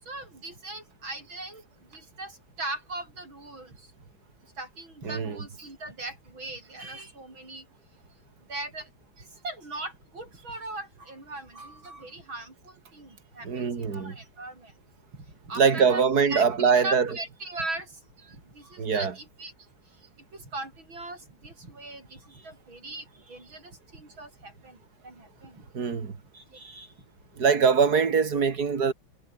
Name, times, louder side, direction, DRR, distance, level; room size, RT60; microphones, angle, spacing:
voice 1, 0.0-3.9 4.6-7.7 8.5-8.9 9.2-14.7 15.1-16.0 16.3-18.0 18.3-19.5 19.9-20.0 20.3-26.0 26.3-26.9, right 2 dB, 75° right, 9.0 m, -39 dB
voice 2, 5.0-5.4 13.4-14.2 15.6-17.1 18.8-19.1 25.7-26.1 27.4-28.9, right 6 dB, 50° right, 3.0 m, -23 dB
omnidirectional pair, 2.2 m